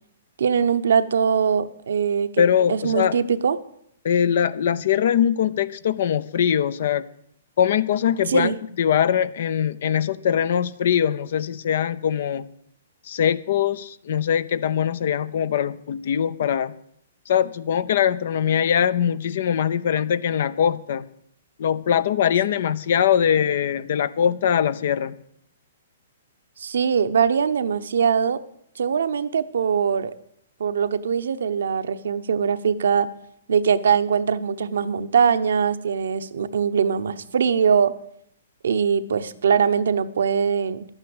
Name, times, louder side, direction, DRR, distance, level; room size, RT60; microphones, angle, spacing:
voice 1, 0.4-2.4 2.7-3.6 8.3-8.6 26.6-28.4 28.8-30.1 30.6-33.1 33.5-38.0 38.6-40.9, right 7 dB, 75° right, 12 dB, 0.8 m, -22 dB
voice 2, 2.4-3.2 4.0-7.0 7.6-12.5 13.1-16.7 17.3-21.1 21.6-25.2, left 8 dB, 60° left, 17 dB, 0.6 m, -22 dB
11.5 x 9.0 x 7.8 m, 0.68 s
hypercardioid pair, 140°, 0 cm